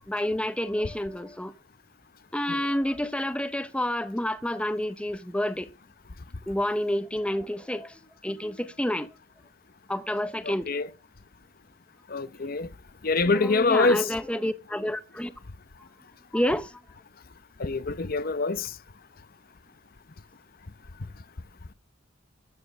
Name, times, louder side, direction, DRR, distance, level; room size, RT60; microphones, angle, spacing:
voice 1, 0.1-1.5 2.3-5.7 6.5-7.9 8.2-9.1 9.9-10.7 13.3-15.3 16.3-16.7, left 1 dB, 5° left, 0.8 m, -29 dB
voice 2, 10.4-10.9 12.1-12.7 13.0-14.1 17.6-18.7, left 3 dB, 50° left, 0.8 m, -25 dB
13.5 x 7.6 x 6.7 m
head